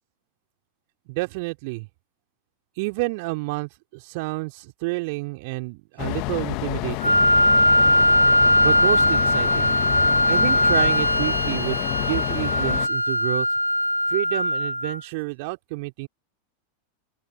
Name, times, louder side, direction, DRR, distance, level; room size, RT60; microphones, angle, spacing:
voice 1, 1.1-1.9 2.8-7.2 8.6-9.8 10.3-13.5 14.1-16.1, right 27 dB, 50° right, 4.0 m, -29 dB
sound 1, 6.0-12.9, left 27 dB, 40° left, 1.8 m, -29 dB
Wind instrument woodwind instrument, 7.0-15.0, equal, 90° left, 1.8 m, -20 dB
open air
figure-of-eight pair, 90°, 0 cm